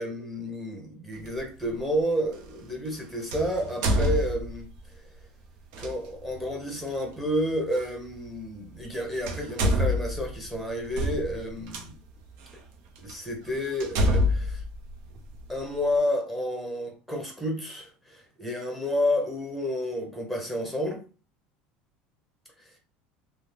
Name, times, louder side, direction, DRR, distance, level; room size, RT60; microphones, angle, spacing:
voice 1, 0.0-4.7 5.8-11.9 13.0-14.6 15.5-21.0, equal, ahead, 0.9 m, -30 dB
sound 1, 1.2-1.4 3.3-4.8 5.7-5.9 7.8-7.9 8.8-9.0 9.2-11.8 12.5-12.6 13.1-13.2 13.8-15.6, equal, 70° right, 0.6 m, -26 dB
2.6 x 2.0 x 3.3 m
supercardioid pair, 125°, 4 cm